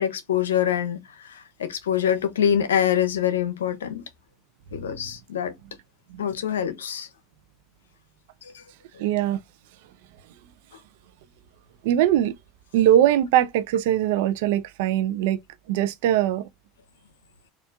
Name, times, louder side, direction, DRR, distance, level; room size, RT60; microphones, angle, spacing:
voice 1, 0.0-4.0 4.7-5.5 6.2-7.1 8.4-8.6, left 9 dB, 85° left, 0.6 m, -25 dB
voice 2, 9.0-9.4 11.8-12.3 12.7-15.4 15.7-16.4, right 12 dB, 70° right, 0.5 m, -21 dB
4.4 x 2.5 x 2.3 m
hypercardioid pair, 80°, 0 cm